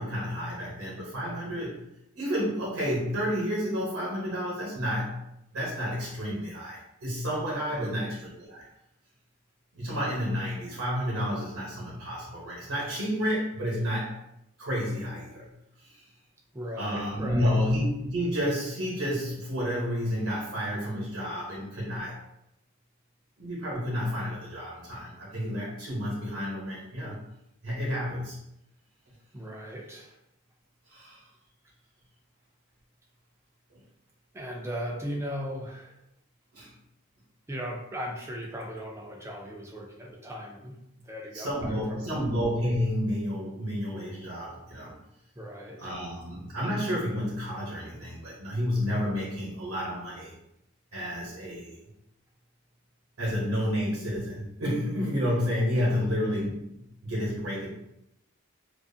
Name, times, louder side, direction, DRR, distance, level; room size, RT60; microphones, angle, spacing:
voice 1, 0.0-1.8 2.1-5.2 5.5-8.6 9.7-14.2 14.6-15.5 15.8-16.1 16.8-22.2 23.4-27.2 27.6-28.4 30.9-31.3 33.7-33.8 36.5-36.7 41.3-44.9 45.8-50.3 50.9-51.8 53.2-57.7, equal, 80° right, -5 dB, 0.8 m, -30 dB
voice 2, 16.5-17.6 29.3-30.2 34.3-36.0 37.5-40.8 41.1-42.2 45.4-45.8 55.9-56.1, equal, 10° right, -1 dB, 0.3 m, -37 dB
2.4 x 2.4 x 2.6 m, 0.82 s
head